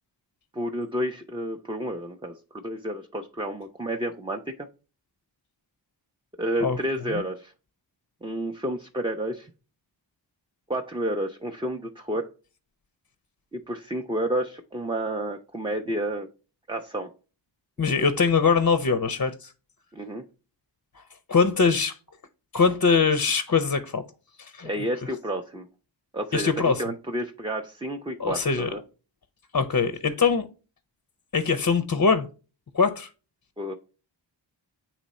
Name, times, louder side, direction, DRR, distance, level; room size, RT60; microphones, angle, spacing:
voice 1, 0.5-4.7 6.4-7.5 8.2-9.5 10.7-12.3 13.5-16.3 16.7-17.1 19.9-20.2 24.6-25.7 26.1-28.8 33.6-33.7, right 1 dB, 10° right, 0.5 m, -30 dB
voice 2, 17.8-19.5 21.3-22.0 22.5-24.0 24.4-24.7 26.3-26.8 28.2-28.7 29.5-30.5 31.3-32.3 32.7-33.1, left 5 dB, 40° left, 0.5 m, -22 dB
8.3 x 3.0 x 4.1 m
wide cardioid pair, 45°, 47 cm